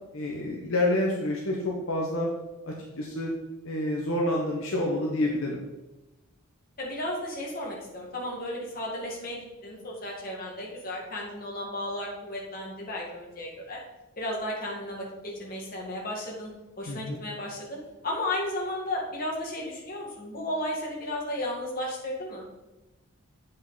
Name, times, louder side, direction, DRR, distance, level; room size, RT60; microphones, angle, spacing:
voice 1, 0.1-2.3 2.6-3.3 3.6-5.6 16.9-17.2, left 1 dB, 65° left, -2 dB, 1.0 m, -28 dB
voice 2, 6.8-13.8 14.2-15.1 15.4-16.5 16.8-17.8 18.0-22.4, left 1 dB, 40° left, -3 dB, 1.9 m, -34 dB
8.0 x 5.6 x 3.9 m, 1.0 s
head